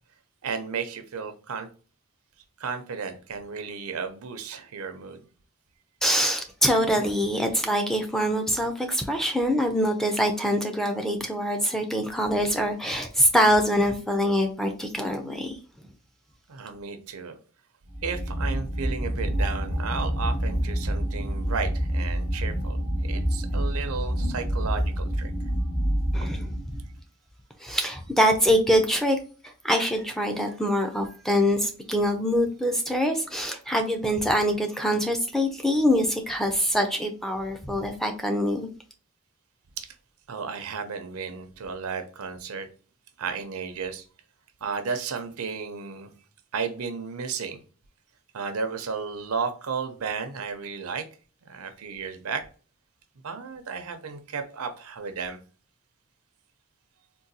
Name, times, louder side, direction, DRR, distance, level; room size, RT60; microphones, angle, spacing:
voice 1, 0.4-1.7 2.6-5.2 16.5-17.4 18.0-25.3 39.8-39.9 40.3-42.7 43.2-44.0 44.6-46.1 46.5-47.6 48.3-51.0 51.4-52.4 53.2-55.4, right 5 dB, 85° right, 0.6 m, -33 dB
voice 2, 6.0-15.6 26.1-26.5 27.6-29.2 29.6-38.7, equal, ahead, 0.3 m, -24 dB
sound 1, 17.9-27.0, equal, 85° left, 1.2 m, -27 dB
3.8 x 2.2 x 2.6 m
head